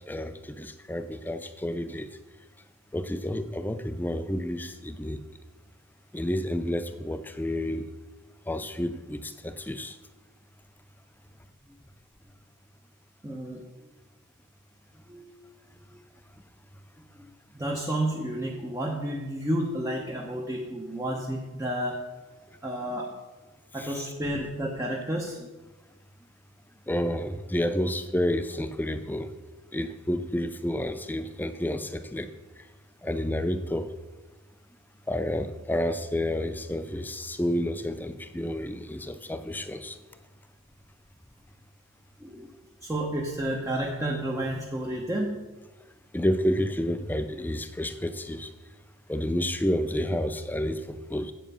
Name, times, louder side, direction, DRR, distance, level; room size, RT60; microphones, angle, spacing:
voice 1, 0.1-2.1 2.9-5.2 6.1-7.8 8.5-10.0 23.8-23.9 26.9-29.3 29.7-32.3 33.0-33.9 35.1-40.0 46.1-48.5 49.1-51.3, left 1 dB, 10° left, 0.4 m, -30 dB
voice 2, 13.2-13.6 15.1-15.3 15.9-16.0 17.2-22.1 22.6-23.2 23.7-25.5 42.2-42.5 42.8-45.3, right 1 dB, 15° right, 0.9 m, -31 dB
8.2 x 7.4 x 5.6 m
head